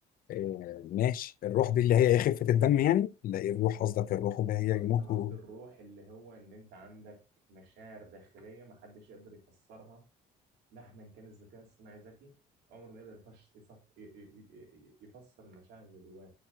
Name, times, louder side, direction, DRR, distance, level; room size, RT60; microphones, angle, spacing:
voice 1, 0.3-5.3, left 11 dB, 60° left, 0.5 m, -28 dB
voice 2, 4.5-7.2 7.5-10.1 10.7-12.3 12.7-16.3, right 2 dB, 85° right, 3.7 m, -52 dB
10.0 x 6.5 x 2.8 m
cardioid pair, 110°, 17 cm